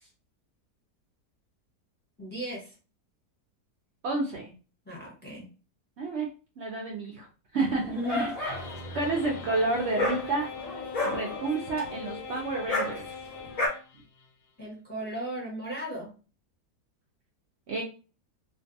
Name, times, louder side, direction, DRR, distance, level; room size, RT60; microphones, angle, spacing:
voice 1, 2.2-2.7 4.8-5.5 7.9-8.3 14.6-16.1, equal, 10° left, -3 dB, 0.7 m, -35 dB
voice 2, 4.0-4.5 6.0-6.3 6.6-7.3 7.5-8.3 8.9-10.5 11.0-13.1 17.7-17.8, right 3 dB, 75° right, -1 dB, 0.6 m, -30 dB
Dog, 7.6-13.7, left 2 dB, 50° left, 0.4 m, -33 dB
sound 1, 8.5-14.3, left 4 dB, 90° left, 1.2 m, -41 dB
2.5 x 2.4 x 2.6 m, 0.35 s
omnidirectional pair, 1.7 m